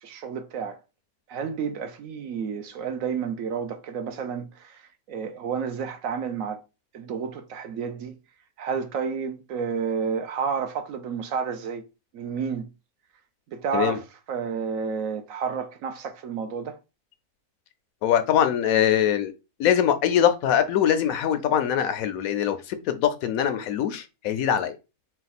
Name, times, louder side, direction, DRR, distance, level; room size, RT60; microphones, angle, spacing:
voice 1, 0.0-0.8 1.3-4.8 5.1-6.6 6.9-8.2 8.6-11.8 12.1-12.7 13.5-16.8, right 6 dB, 65° right, 1.0 m, -30 dB
voice 2, 18.0-19.3 19.6-24.8, left 9 dB, 70° left, 1.0 m, -23 dB
4.2 x 2.3 x 4.0 m
omnidirectional pair, 1.6 m